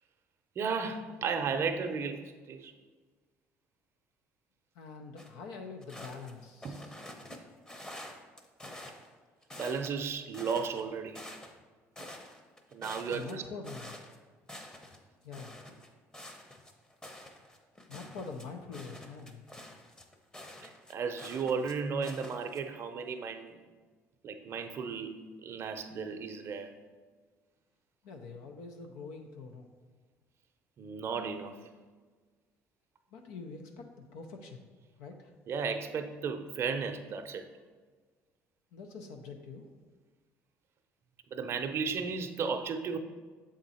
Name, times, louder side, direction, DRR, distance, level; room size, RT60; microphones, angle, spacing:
voice 1, 0.6-2.7 6.6-6.8 9.6-11.2 12.7-13.4 20.6-23.7 24.2-25.1 25.4-26.7 30.8-31.5 35.5-37.4 41.3-43.0, right 5 dB, 50° right, 6 dB, 0.6 m, -34 dB
voice 2, 4.7-6.9 13.1-14.0 15.2-15.6 17.9-19.5 28.0-29.7 33.1-34.6 35.0-35.3 38.7-39.7, left 4 dB, 85° left, 3 dB, 0.6 m, -45 dB
sound 1, 5.2-5.3 5.8-7.4 7.7-9.1 9.4-10.0 10.3-11.6 12.0-14.2 14.4-15.0 15.3-21.7 22.0-22.6, left 1 dB, 15° left, 0.8 m, -48 dB
7.1 x 3.7 x 4.2 m, 1.4 s
supercardioid pair, 85°, 6 cm